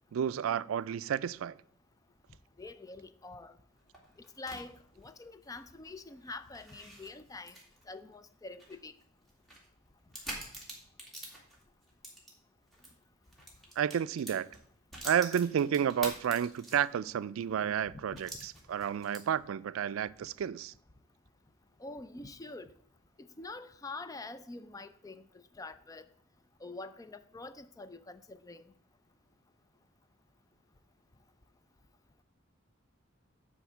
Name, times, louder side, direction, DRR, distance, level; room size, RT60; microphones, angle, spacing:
voice 1, 0.1-1.6 13.8-14.5 15.0-20.7, right 8 dB, 85° right, 0.3 m, -31 dB
voice 2, 2.6-3.6 4.4-7.6 7.9-8.9 17.9-18.2 21.8-22.7 23.2-26.1 26.6-28.6, left 3 dB, 15° left, 0.4 m, -46 dB
sound 1, 3.7-12.9 13.2-17.1 17.5-17.6 18.1-19.5, right 1 dB, ahead, 2.2 m, -47 dB
9.3 x 3.6 x 7.0 m
head